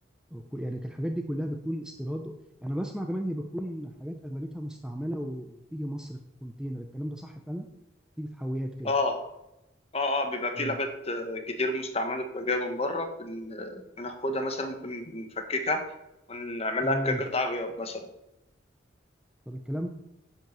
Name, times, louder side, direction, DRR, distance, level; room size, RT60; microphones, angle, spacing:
voice 1, 0.3-2.3 2.6-7.7 8.2-8.9 10.6-10.8 16.8-17.2 19.5-19.9, equal, 5° right, 3 dB, 0.7 m, -34 dB
voice 2, 8.8-9.3 9.9-15.8 16.3-18.1, left 2 dB, 30° left, 6 dB, 1.5 m, -30 dB
10.5 x 5.9 x 7.6 m, 0.91 s
head